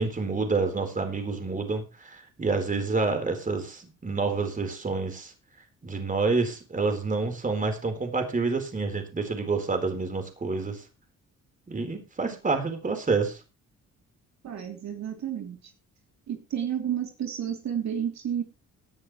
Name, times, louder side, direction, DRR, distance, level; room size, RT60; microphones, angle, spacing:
voice 1, 0.0-5.3 5.8-10.8 11.7-13.4, right 4 dB, 25° right, 5 dB, 4.0 m, -28 dB
voice 2, 14.4-15.6 16.3-18.4, right 9 dB, 65° right, 3 dB, 3.0 m, -31 dB
18.0 x 10.5 x 3.1 m, 0.29 s
cardioid pair, 90°, 30 cm